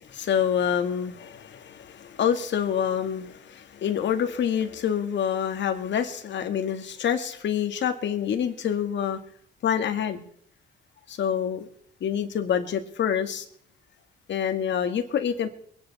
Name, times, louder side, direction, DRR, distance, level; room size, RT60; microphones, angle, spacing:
voice 1, 0.0-9.2 9.6-10.3 11.1-11.7 12.0-13.4 14.3-15.5, left 8 dB, 65° left, 7 dB, 2.0 m, -27 dB
22.5 x 10.5 x 4.2 m, 0.63 s
cardioid pair, 90°, 20 cm